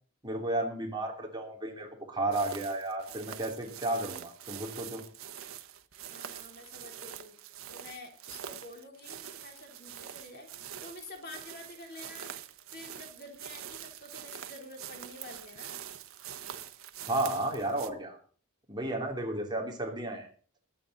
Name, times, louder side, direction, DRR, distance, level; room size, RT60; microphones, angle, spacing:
voice 1, 0.2-5.0 17.1-18.2 18.7-20.3, right 2 dB, 20° right, 1 dB, 3.0 m, -33 dB
sound 1, 2.3-17.9, right 9 dB, 75° right, 1.2 m, -45 dB
voice 2, 6.1-7.3 7.7-10.5 10.8-12.4 12.7-15.8, left 2 dB, 45° left, 2 dB, 3.8 m, -48 dB
21.5 x 9.0 x 4.1 m, 0.43 s
head